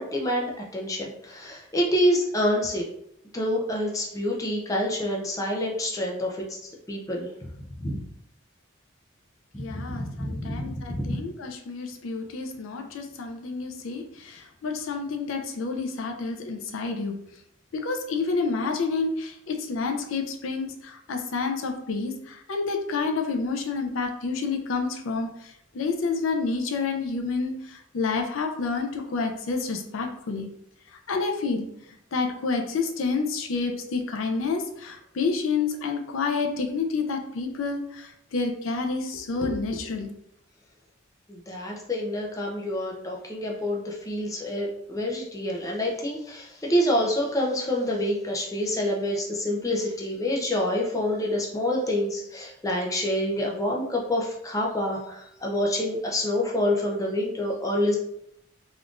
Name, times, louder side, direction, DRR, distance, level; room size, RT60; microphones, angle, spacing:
voice 1, 0.0-2.9 3.3-6.6 6.9-7.3 7.8-8.0 9.5-11.2 41.3-58.0, left 1 dB, 15° left, -1 dB, 0.4 m, -27 dB
voice 2, 9.6-17.2 17.7-30.5 30.9-31.7 32.1-40.1, left 4 dB, 80° left, 4 dB, 0.5 m, -29 dB
3.5 x 2.5 x 2.4 m, 0.74 s
head